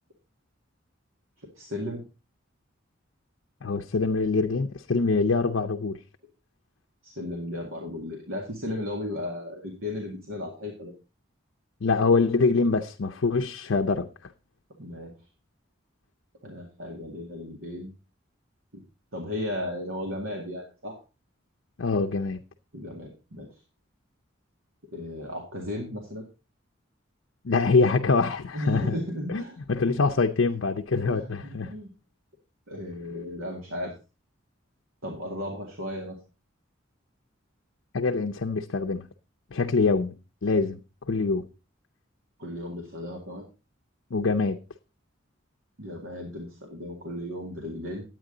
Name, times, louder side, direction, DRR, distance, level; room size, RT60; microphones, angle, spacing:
voice 1, 1.6-2.0 7.0-10.9 14.8-15.1 16.4-17.9 18.7-18.8 19.1-21.0 22.7-23.5 24.9-26.3 28.5-30.0 31.0-31.9 32.7-33.9 35.0-36.2 42.4-43.5 45.8-48.0, left 1 dB, 85° right, 2.1 m, -35 dB
voice 2, 3.6-6.0 11.8-14.3 21.8-22.4 27.4-29.0 29.3-31.7 37.9-39.1 39.5-40.2 40.4-40.8 41.1-41.5 44.1-44.6, left 4 dB, 70° left, 0.6 m, -24 dB
10.0 x 9.0 x 3.8 m
head